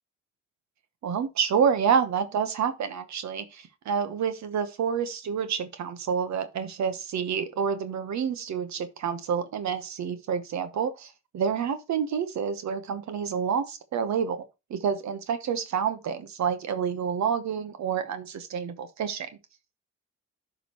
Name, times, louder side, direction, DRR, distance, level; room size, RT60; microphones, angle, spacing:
voice 1, 1.0-14.4 14.7-19.3, right 7 dB, 65° right, 1.1 m, -28 dB
11.0 x 5.0 x 3.0 m
cardioid pair, 90°, 30 cm